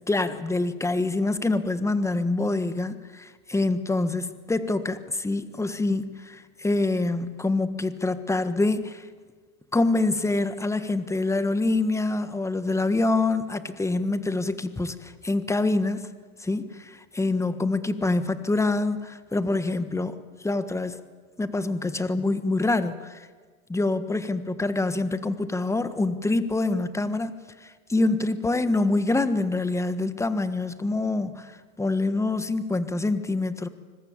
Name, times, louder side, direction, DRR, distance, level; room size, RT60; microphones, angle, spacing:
voice 1, 0.1-9.1 9.7-16.1 16.4-20.2 20.4-21.0 21.4-23.3 23.7-33.7, left 2 dB, 5° left, 12 dB, 1.4 m, -26 dB
25.5 x 22.0 x 8.9 m, 1.5 s
hypercardioid pair, 115°, 43 cm